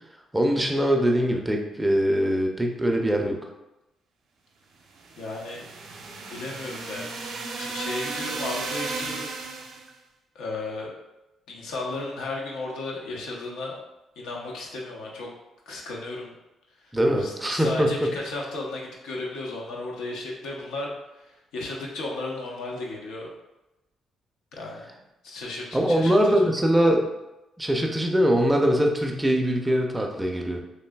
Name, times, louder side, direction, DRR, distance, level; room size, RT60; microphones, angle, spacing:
voice 1, 0.3-3.4 16.9-18.1 25.7-27.0 27.6-30.6, equal, 10° right, 2 dB, 0.4 m, -22 dB
sound 1, 5.0-9.9, right 4 dB, 75° right, 0.5 m, -34 dB
voice 2, 5.2-5.7 6.3-7.1 7.6-9.3 10.3-10.9 11.5-13.8 14.2-15.3 15.7-16.3 16.8-23.3 24.5-24.9 25.2-26.5, left 2 dB, 90° left, -2 dB, 0.6 m, -34 dB
3.2 x 2.5 x 2.2 m, 0.96 s
cardioid pair, 90°, 0 cm